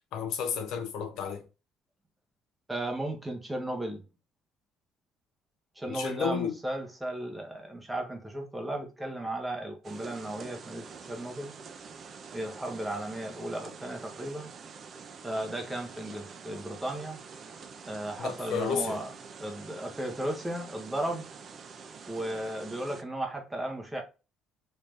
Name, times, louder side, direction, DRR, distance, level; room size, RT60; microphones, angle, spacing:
voice 1, 0.1-1.4 5.9-6.6 18.2-19.0, left 6 dB, 70° left, 0.7 m, -32 dB
voice 2, 2.7-4.0 5.8-11.5 12.3-14.5 15.2-17.2 17.9-19.1 19.4-21.3 22.1-24.0, right 1 dB, 5° right, 0.9 m, -35 dB
sound 1, 9.8-23.0, right 5 dB, 35° right, 0.5 m, -47 dB
3.2 x 2.7 x 3.5 m
cardioid pair, 145°, 0 cm